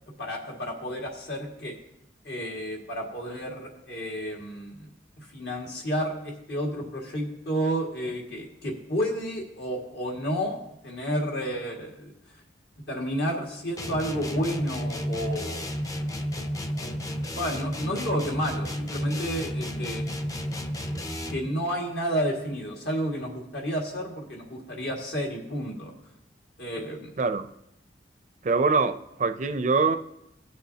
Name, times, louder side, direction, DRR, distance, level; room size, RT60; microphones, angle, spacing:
voice 1, 0.2-1.7 2.2-4.9 5.2-10.6 10.8-12.1 12.9-15.7 16.8-16.9 17.3-20.0 21.3-25.9 26.6-27.1, equal, 65° left, 0 dB, 2.0 m, -31 dB
sound 1, 13.8-21.5, equal, 20° left, 0.5 m, -32 dB
voice 2, 27.2-27.5 28.4-30.0, right 4 dB, 45° right, 9 dB, 0.5 m, -24 dB
17.5 x 6.3 x 2.8 m, 0.82 s
head